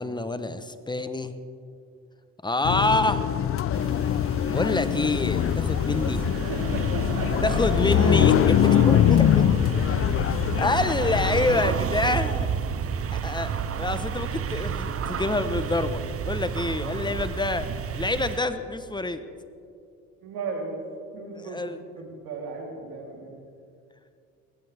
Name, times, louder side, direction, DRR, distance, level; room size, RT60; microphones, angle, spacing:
voice 1, 0.0-1.3 2.4-3.2 4.5-6.2 7.4-9.0 9.4-9.5 10.6-12.5 13.1-19.2 21.4-21.8, left 2 dB, 10° left, 11 dB, 1.0 m, -27 dB
sound 1, 2.6-11.6, left 11 dB, 35° left, 0.5 m, -23 dB
sound 2, 3.7-18.4, right 7 dB, 35° right, 0.9 m, -31 dB
voice 2, 6.3-7.6 7.9-8.3 8.7-9.0 20.2-20.8 21.1-21.7 22.0-23.3, right 4 dB, 70° right, -1 dB, 3.5 m, -35 dB
20.0 x 15.0 x 3.5 m, 2.4 s
hypercardioid pair, 65°, 38 cm